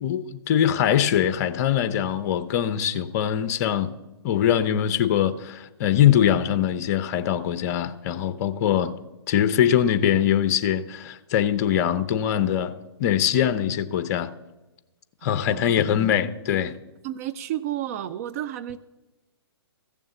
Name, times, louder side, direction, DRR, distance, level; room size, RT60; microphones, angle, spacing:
voice 1, 0.0-3.9 4.2-9.0 9.3-12.7 13.0-14.3 15.2-16.7, left 10 dB, 40° left, 0.8 m, -22 dB
voice 2, 15.4-15.8 16.0-16.2 17.0-18.8, right 12 dB, 35° right, 0.5 m, -31 dB
15.0 x 7.2 x 7.1 m
hypercardioid pair, 140°, 14 cm